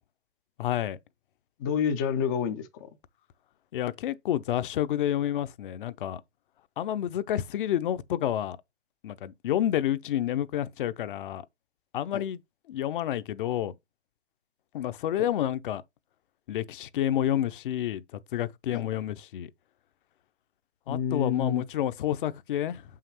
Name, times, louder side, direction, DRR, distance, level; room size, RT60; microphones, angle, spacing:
voice 1, 0.6-1.0 3.7-6.2 6.8-8.6 9.0-11.4 11.9-12.4 12.7-13.7 14.7-15.8 16.5-18.0 18.3-19.5 20.9-22.8, left 11 dB, 50° left, 0.7 m, -29 dB
voice 2, 1.6-2.9 12.1-12.2 18.7-18.8 20.9-21.6, left 7 dB, 20° left, 0.3 m, -28 dB
7.1 x 5.7 x 3.0 m
hypercardioid pair, 140°, 33 cm